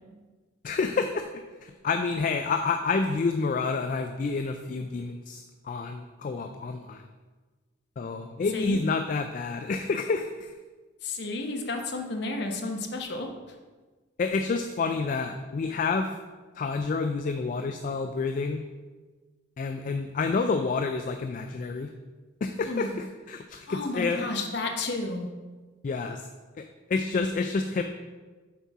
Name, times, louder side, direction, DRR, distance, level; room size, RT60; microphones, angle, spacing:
voice 1, 0.6-7.0 8.0-10.5 14.2-16.1 16.6-18.6 19.6-21.9 22.4-24.3 25.8-26.3 26.6-26.7 26.9-27.8, left 4 dB, 45° left, 6 dB, 0.3 m, -29 dB
voice 2, 11.0-13.3 22.6-22.9 23.7-25.3, left 2 dB, 60° left, 3 dB, 0.9 m, -32 dB
7.4 x 4.2 x 4.7 m, 1.3 s
head